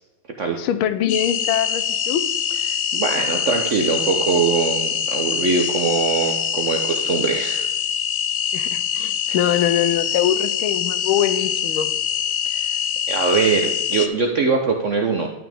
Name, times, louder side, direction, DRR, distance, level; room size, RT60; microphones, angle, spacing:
voice 1, 0.6-2.3 8.5-11.9, left 10 dB, 90° left, 12 dB, 1.5 m, -23 dB
sound 1, 1.1-14.1, left 8 dB, 70° left, 0.8 m, -24 dB
voice 2, 2.7-7.7 9.3-9.4 12.5-12.8 13.1-15.3, right 5 dB, 60° right, 3 dB, 0.7 m, -22 dB
11.5 x 6.1 x 3.5 m, 1.0 s
omnidirectional pair, 2.2 m